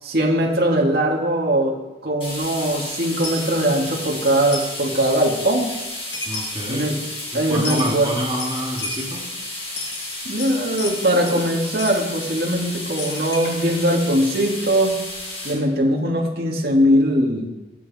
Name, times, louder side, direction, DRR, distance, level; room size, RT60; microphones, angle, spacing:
voice 1, 0.0-5.8 6.7-7.0 7.3-8.1 10.3-15.0 15.4-17.5, right 1 dB, 60° right, -2 dB, 2.2 m, -20 dB
sound 1, 2.2-15.5, left 1 dB, 35° left, 4.8 m, -32 dB
Coin (dropping), 3.2-3.5 4.5-4.8 5.9-6.0 6.1-6.7 7.6-8.0 8.4-9.1 9.6-11.4 11.8-12.0 13.0-15.6, left 3 dB, 80° left, 2.1 m, -33 dB
voice 2, 6.3-7.0 7.3-9.3, right 1 dB, 25° right, -3 dB, 2.1 m, -28 dB
16.5 x 8.3 x 4.3 m, 1.1 s
head